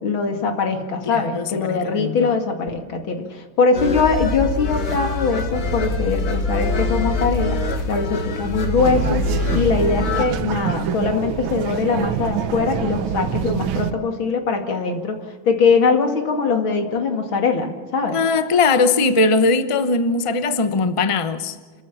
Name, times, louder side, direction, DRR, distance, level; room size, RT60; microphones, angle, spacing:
voice 1, 0.0-7.6 7.9-9.2 9.5-15.2 15.4-18.2, left 4 dB, 85° left, 5 dB, 3.0 m, -21 dB
voice 2, 1.1-2.3 18.1-21.6, left 3 dB, 25° left, 10 dB, 0.7 m, -20 dB
sound 1, 3.7-10.3, left 2 dB, 60° left, 2.5 m, -24 dB
sound 2, 8.8-13.9, right 9 dB, 80° right, 1.7 m, -26 dB
29.5 x 14.0 x 7.3 m, 1.6 s
omnidirectional pair, 2.1 m